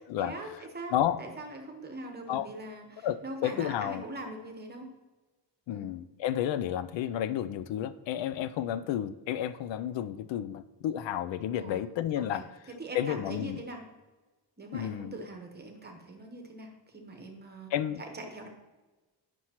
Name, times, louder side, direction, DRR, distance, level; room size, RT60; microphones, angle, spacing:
voice 1, 0.0-4.9 5.7-5.9 11.6-11.9 12.2-13.8 14.6-17.7 18.0-18.5, right 2 dB, 25° right, 3 dB, 1.0 m, -42 dB
voice 2, 3.0-4.0 5.7-12.4 12.9-13.6 14.7-15.2 17.7-18.0, left 11 dB, 85° left, 14 dB, 0.5 m, -31 dB
9.5 x 6.1 x 2.9 m, 1.2 s
cardioid pair, 145°, 43 cm